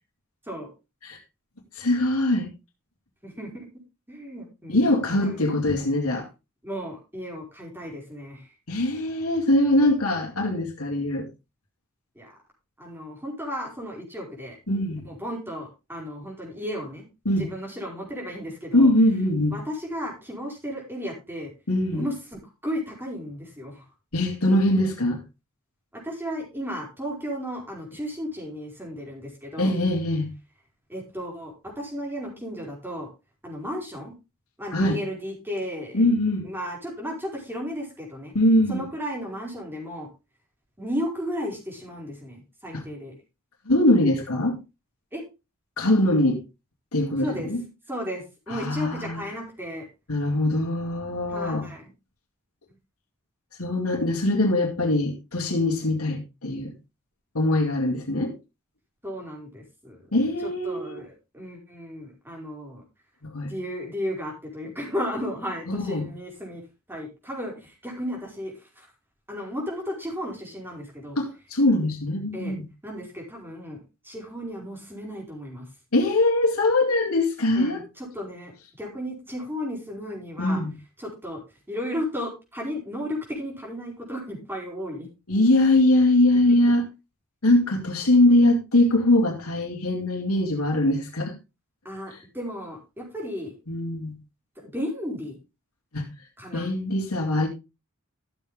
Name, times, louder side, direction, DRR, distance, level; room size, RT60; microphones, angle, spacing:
voice 1, 1.7-2.5 4.7-6.3 8.7-11.3 14.7-15.0 17.3-17.5 18.7-19.6 21.7-22.0 24.1-25.2 29.6-30.3 34.7-35.0 35.9-36.5 38.3-38.8 42.7-42.8 43.7-44.6 45.8-46.4 46.9-47.6 48.5-49.2 50.1-51.7 53.6-56.7 57.3-58.3 60.1-61.0 63.2-63.5 65.7-66.1 71.2-72.7 75.9-77.8 80.4-80.7 85.3-86.8 87.4-91.3 93.7-94.2 95.9-96.0 96.5-97.5, left 1 dB, 85° left, 2.5 m, -22 dB
voice 2, 3.2-3.7 4.1-5.5 6.6-8.5 12.1-12.3 12.8-14.6 15.0-17.0 17.4-18.9 19.5-21.5 21.9-23.8 25.9-29.7 30.9-33.1 33.4-34.1 34.6-36.1 36.4-38.3 38.7-40.1 40.8-43.1 45.1-45.2 47.2-47.5 47.9-49.9 51.3-51.9 59.0-60.0 60.4-62.8 63.4-66.6 66.9-68.9 69.3-71.2 72.3-72.5 72.8-75.7 77.5-78.5 78.8-80.6 81.0-81.4 81.7-85.1 91.8-93.5 94.5-95.4 96.4-96.7, equal, 10° right, 5.0 m, -34 dB
14.0 x 7.2 x 3.6 m
head